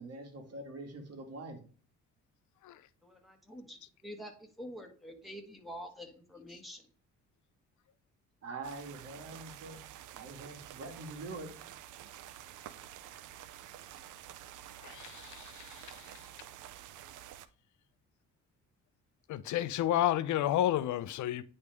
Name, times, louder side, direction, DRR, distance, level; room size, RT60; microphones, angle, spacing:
voice 1, 0.0-1.6 8.4-9.8 10.1-11.6, right 2 dB, 55° right, 1.7 m, -44 dB
voice 2, 3.0-6.8, equal, ahead, 1.7 m, -47 dB
sound 1, 8.6-17.5, right 12 dB, 80° right, 0.6 m, -49 dB
voice 3, 14.8-16.2 19.3-21.4, left 12 dB, 75° left, 0.5 m, -31 dB
9.6 x 3.2 x 3.4 m
cardioid pair, 90°, 30 cm